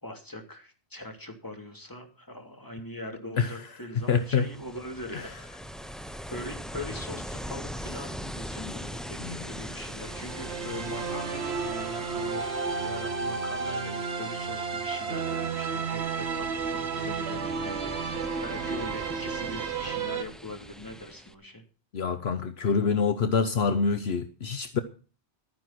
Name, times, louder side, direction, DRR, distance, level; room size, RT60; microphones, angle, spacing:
voice 1, 0.0-5.3 6.3-12.5 12.8-17.9 18.4-21.6, left 1 dB, 20° left, 2.8 m, -41 dB
Ocean, 4.0-21.3, equal, ahead, 0.6 m, -42 dB
voice 2, 4.1-4.5 5.1-5.2 9.2-9.4 21.9-24.8, left 5 dB, 70° left, 1.1 m, -26 dB
sound 1, 9.8-20.2, right 5 dB, 70° right, 1.4 m, -32 dB
13.0 x 9.6 x 5.9 m
omnidirectional pair, 1.1 m